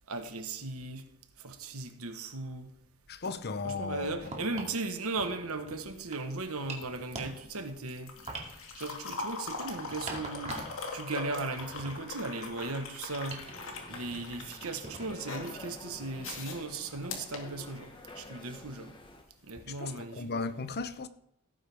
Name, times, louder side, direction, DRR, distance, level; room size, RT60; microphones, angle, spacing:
voice 1, 0.1-1.1 1.4-2.7 3.6-8.2 8.8-13.4 13.9-18.9 19.4-20.2, right 3 dB, 75° right, 1.3 m, -37 dB
voice 2, 3.1-4.6 19.7-21.1, left 4 dB, 50° left, 0.8 m, -36 dB
sound 1, 4.1-4.8 5.2-6.3 6.6-7.8 8.3-10.9 11.2-12.8 13.3-13.6 14.1-14.4 14.8-15.4, right 2 dB, 30° right, 2.2 m, -44 dB
sound 2, 5.9-18.2 19.5-19.6, left 3 dB, 65° left, 2.4 m, -42 dB
sound 3, 13.4-19.2, left 2 dB, 25° left, 1.3 m, -50 dB
17.0 x 9.4 x 3.5 m
head